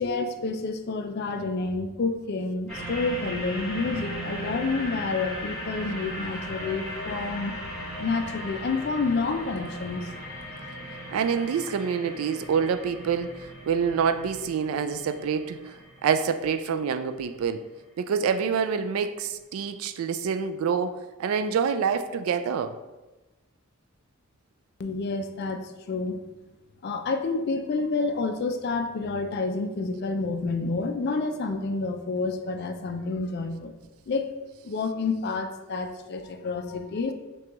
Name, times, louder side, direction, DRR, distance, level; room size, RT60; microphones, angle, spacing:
voice 1, 0.0-7.5 8.0-10.3 24.8-26.2 26.8-33.7 34.1-34.3 34.6-37.1, left 3 dB, 50° left, 0.4 m, -29 dB
sound 1, 2.7-17.4 18.0-18.1, equal, 5° left, 1.4 m, -37 dB
voice 2, 11.1-17.6 18.0-22.8, right 6 dB, 85° right, 0.3 m, -27 dB
5.9 x 2.3 x 2.9 m
head